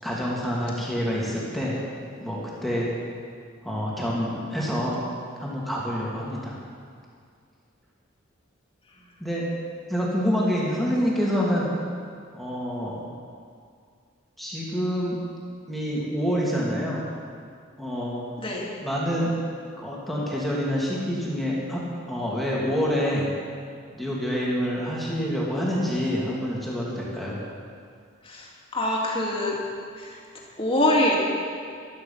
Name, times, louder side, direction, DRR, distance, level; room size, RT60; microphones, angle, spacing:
voice 1, 0.0-1.8 2.2-2.9 3.6-4.9 5.4-6.5 9.2-9.5 9.9-11.7 12.3-13.0 14.4-15.2 15.7-17.0 17.8-18.2 18.8-19.3 19.8-21.8 22.1-23.3 23.9-27.4, equal, ahead, -6 dB, 2.8 m, -27 dB
voice 2, 28.7-29.6 30.6-31.2, left 1 dB, 25° left, -3 dB, 2.5 m, -23 dB
15.0 x 12.5 x 5.7 m, 2.2 s
head